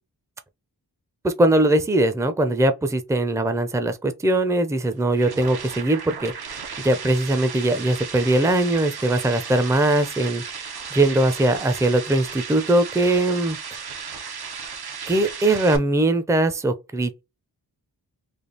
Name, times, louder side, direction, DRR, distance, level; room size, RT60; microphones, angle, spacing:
voice 1, 1.2-10.4 10.9-13.6 15.1-17.2, right 1 dB, 10° right, 0.5 m, -21 dB
sound 1, 4.8-15.8, right 6 dB, 70° right, 0.9 m, -35 dB
3.4 x 2.3 x 3.9 m
wide cardioid pair, 65°, 39 cm